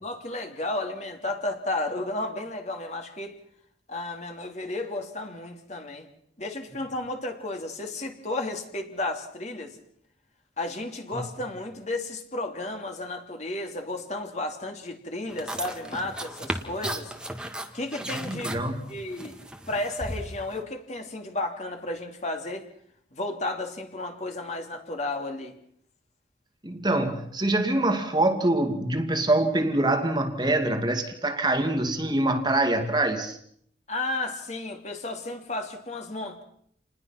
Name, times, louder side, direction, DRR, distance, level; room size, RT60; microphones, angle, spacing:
voice 1, 0.0-3.4 3.9-6.1 6.4-9.8 10.6-17.1 17.7-18.6 18.9-19.4 19.7-22.6 23.1-25.6 33.9-36.4, left 2 dB, 40° left, 4 dB, 3.1 m, -33 dB
sound 1, 15.3-20.6, right 1 dB, 5° right, 1.8 m, -36 dB
voice 2, 18.2-18.8 26.6-33.4, right 2 dB, 25° right, 5 dB, 2.3 m, -24 dB
29.0 x 20.5 x 5.9 m, 0.65 s
head